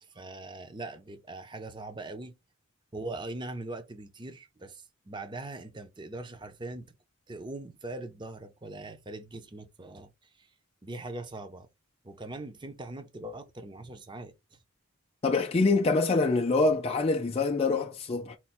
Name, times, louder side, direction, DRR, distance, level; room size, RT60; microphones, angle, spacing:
voice 1, 0.0-2.4 2.9-6.9 7.3-10.5 10.8-11.7 12.0-14.6, right 2 dB, 20° right, 0.6 m, -41 dB
voice 2, 15.2-18.4, left 3 dB, 30° left, 0.4 m, -25 dB
4.3 x 2.2 x 4.2 m
head